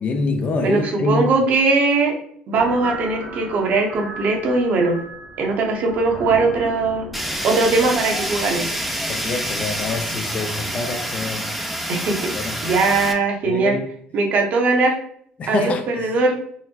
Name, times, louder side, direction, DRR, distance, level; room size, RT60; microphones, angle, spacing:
voice 1, 0.0-1.3 9.1-11.5 12.3-12.6 13.4-13.9 15.4-16.1, left 3 dB, 45° left, 0.5 m, -25 dB
voice 2, 0.6-2.2 2.5-5.0 5.4-7.1 7.4-8.8 11.9-12.3 12.6-13.8 14.1-14.9 15.5-16.4, right 3 dB, 60° right, 0.9 m, -20 dB
sound 1, 2.5-10.1, right 2 dB, 80° right, 1.1 m, -37 dB
Fire, 7.1-13.1, equal, ahead, 0.5 m, -27 dB
3.9 x 2.1 x 2.8 m
supercardioid pair, 90°, 3 cm